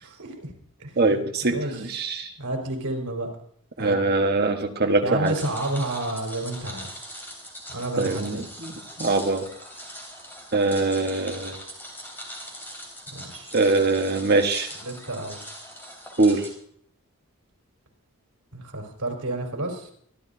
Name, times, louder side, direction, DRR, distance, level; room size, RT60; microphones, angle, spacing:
voice 1, 0.0-0.5 0.8-1.2 1.5-2.0 2.4-3.3 3.8-4.0 5.0-7.0 7.7-8.4 13.1-13.5 14.8-15.5 18.5-19.9, right 1 dB, 80° right, 2 dB, 4.3 m, -31 dB
voice 2, 1.0-1.6 1.9-2.3 3.8-5.3 8.0-9.5 10.5-11.6 13.5-14.7 16.2-16.4, right 3 dB, 45° right, 5 dB, 1.3 m, -22 dB
sound 1, 5.3-16.5, equal, 10° left, 3.7 m, -41 dB
24.5 x 13.0 x 2.7 m, 0.63 s
head